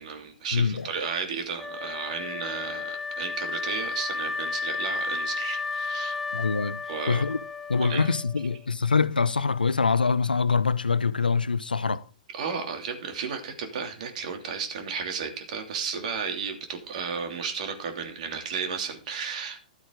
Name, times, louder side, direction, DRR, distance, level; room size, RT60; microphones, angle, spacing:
voice 1, 0.0-6.2 6.9-7.2 7.8-8.1 12.3-19.6, right 6 dB, 55° right, 3.0 m, -33 dB
voice 2, 0.5-0.9 6.3-6.8 7.1-7.4 7.7-12.0, left 5 dB, 80° left, 0.7 m, -24 dB
Wind instrument woodwind instrument, 1.6-8.6, left 4 dB, ahead, 0.9 m, -33 dB
13.0 x 8.2 x 3.9 m
figure-of-eight pair, 110°, 5 cm